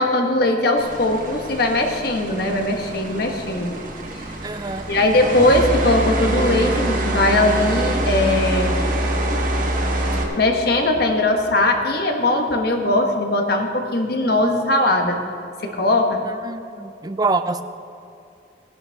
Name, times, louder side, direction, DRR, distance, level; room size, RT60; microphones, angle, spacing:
voice 1, 0.0-3.8 4.9-8.7 9.4-9.5 10.4-15.2 15.6-16.2, left 2 dB, 60° left, 3 dB, 1.3 m, -20 dB
sound 1, 0.8-10.2, right 1 dB, 50° right, 1.5 m, -25 dB
voice 2, 4.4-5.0 16.3-17.6, right 3 dB, 20° right, 11 dB, 0.4 m, -26 dB
18.0 x 11.0 x 3.5 m, 2.5 s
head